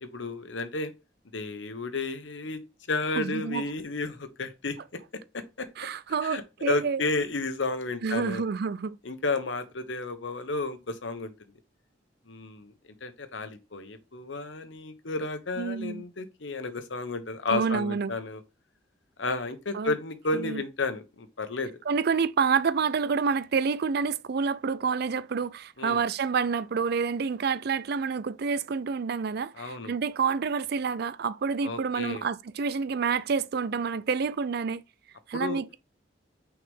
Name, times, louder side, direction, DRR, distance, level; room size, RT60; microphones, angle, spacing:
voice 1, 0.0-0.9 1.3-2.6 2.9-4.8 5.3-5.7 6.2-8.4 9.0-11.3 12.3-12.7 13.0-18.4 19.2-21.7 25.8-26.0 29.5-29.9 31.6-32.2 35.3-35.6, left 3 dB, 85° left, 1.1 m, -32 dB
voice 2, 3.2-3.6 5.8-7.1 8.0-9.0 15.6-16.0 17.5-18.1 19.7-19.9 20.3-20.6 21.9-34.8 35.3-35.8, right 5 dB, 60° right, 0.4 m, -28 dB
6.2 x 4.7 x 3.6 m
head